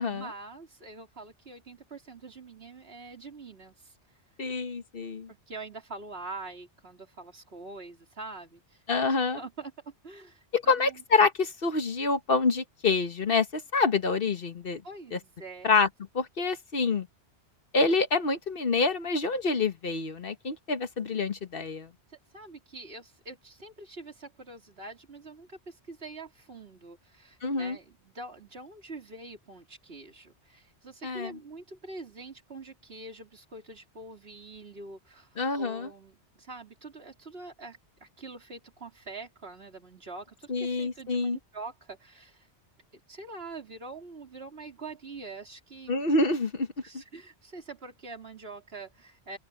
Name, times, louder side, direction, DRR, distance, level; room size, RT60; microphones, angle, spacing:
voice 1, 0.1-4.0 5.3-8.8 9.1-11.0 14.8-15.7 22.1-42.5 42.9-46.0 46.8-49.4, right 3 dB, 60° right, 3.5 m, -45 dB
voice 2, 4.4-5.3 8.9-9.4 10.5-14.8 15.1-15.2 15.6-15.9 16.1-17.1 17.7-21.9 27.4-27.8 31.0-31.4 35.4-35.9 40.5-41.4 45.9-46.7, left 4 dB, 55° left, 1.5 m, -27 dB
open air
omnidirectional pair, 1.1 m